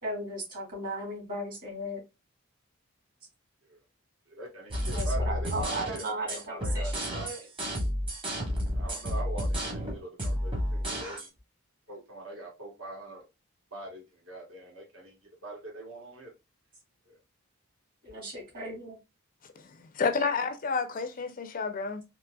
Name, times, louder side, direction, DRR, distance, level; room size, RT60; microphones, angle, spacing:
voice 1, 0.0-2.0 4.9-7.5 18.0-19.0, right 1 dB, 40° right, 2.2 m, -36 dB
voice 2, 4.3-6.9 8.7-11.3 11.9-13.2 13.7-15.2 15.4-16.3 17.1-17.2, right 2 dB, 70° right, 1.4 m, -42 dB
sound 1, 4.7-11.3, equal, 25° right, 1.0 m, -31 dB
voice 3, 19.6-22.0, left 5 dB, 40° left, 0.4 m, -30 dB
4.0 x 2.8 x 2.2 m
head